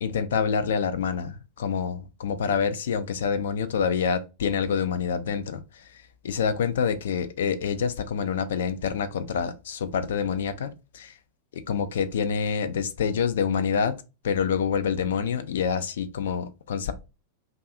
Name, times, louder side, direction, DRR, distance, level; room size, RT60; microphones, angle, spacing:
voice 1, 0.0-11.2 11.5-16.9, left 6 dB, 60° left, 0.3 m, -27 dB
2.6 x 2.3 x 2.4 m
figure-of-eight pair, 90°, 0 cm